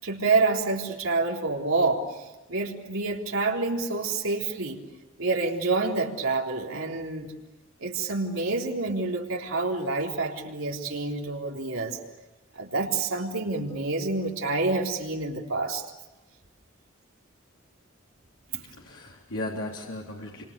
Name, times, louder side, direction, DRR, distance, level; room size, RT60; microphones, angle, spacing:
voice 1, 0.0-2.0 2.5-4.8 5.2-7.3 7.8-12.0 12.6-15.8, right 3 dB, 85° right, 0 dB, 3.9 m, -27 dB
voice 2, 18.5-20.4, left 1 dB, 85° left, -2 dB, 3.6 m, -36 dB
29.0 x 26.5 x 7.0 m, 1.1 s
head